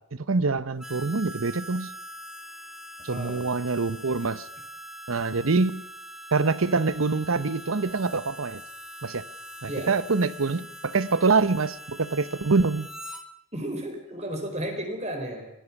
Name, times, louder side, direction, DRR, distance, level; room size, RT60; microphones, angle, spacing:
voice 1, 0.1-1.9 3.0-4.5 5.1-5.9 6.3-8.6 9.0-9.2 9.6-12.9, right 4 dB, 80° right, 0.9 m, -25 dB
Harmonica, 0.8-13.2, equal, 5° right, 1.5 m, -43 dB
voice 2, 3.1-3.5 9.7-9.9 13.5-15.5, right 1 dB, 30° right, 4.5 m, -33 dB
25.0 x 19.5 x 6.0 m
head